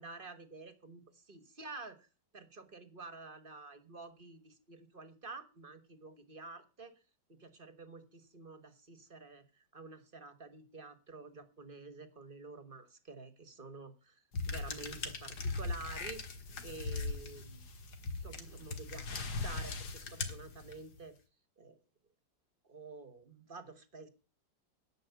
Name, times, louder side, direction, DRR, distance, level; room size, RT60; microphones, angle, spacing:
voice 1, 0.0-2.1 2.3-6.9 7.3-16.2 16.6-17.6 18.2-21.2 21.6-21.8 22.6-24.1, right 3 dB, 35° right, 11 dB, 1.3 m, -50 dB
sound 1, 14.3-21.0, left 3 dB, 60° left, 2.2 m, -39 dB
10.5 x 7.7 x 8.1 m, 0.34 s
omnidirectional pair, 2.0 m